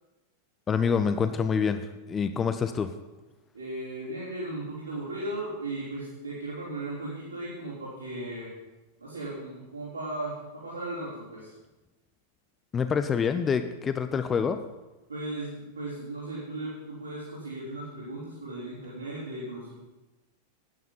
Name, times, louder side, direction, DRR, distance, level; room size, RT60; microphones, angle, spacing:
voice 1, 0.7-1.8 2.1-2.9 12.7-14.6, left 6 dB, 20° left, 9 dB, 0.6 m, -26 dB
voice 2, 3.5-8.5 9.0-11.5 15.1-19.7, right 2 dB, 80° right, -9 dB, 4.1 m, -36 dB
13.0 x 9.4 x 5.6 m, 1.1 s
figure-of-eight pair, 90°, 0 cm